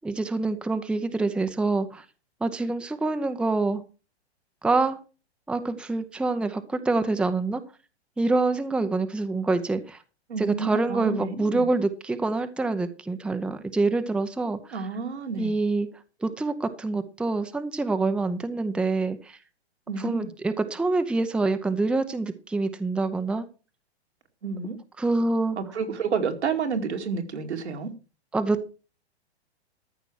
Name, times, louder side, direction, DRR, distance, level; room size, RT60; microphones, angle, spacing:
voice 1, 0.0-2.0 2.4-3.8 4.6-5.0 5.5-7.6 8.2-10.0 10.4-14.8 15.4-15.9 16.2-19.4 20.0-23.5 25.0-25.6 28.3-28.7, right 3 dB, 5° right, 0.7 m, -26 dB
voice 2, 10.3-11.7 14.7-15.5 19.9-20.3 24.4-24.8 25.6-27.9, right 5 dB, 80° right, 2.6 m, -30 dB
13.5 x 6.0 x 6.4 m
hypercardioid pair, 125°, 33 cm